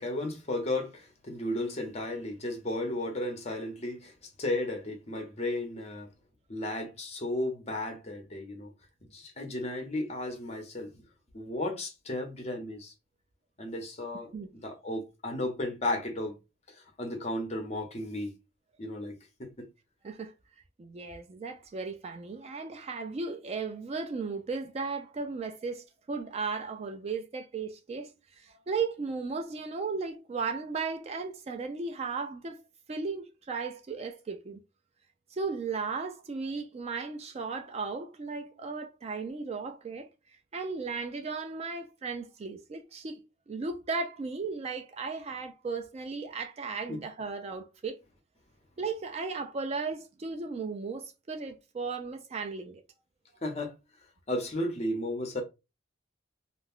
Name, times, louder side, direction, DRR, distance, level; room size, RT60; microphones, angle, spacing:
voice 1, 0.0-6.1 6.5-8.7 9.1-10.9 11.3-12.9 13.6-14.3 14.6-16.3 16.7-18.3 18.8-19.1 19.4-19.7 46.9-47.0 53.4-53.7 54.3-55.4, left 1 dB, 30° left, 0.7 m, -34 dB
voice 2, 20.8-32.6 32.9-34.6 35.3-40.1 40.5-48.0 48.8-52.8, right 4 dB, 30° right, 0.3 m, -36 dB
2.4 x 2.2 x 3.5 m
head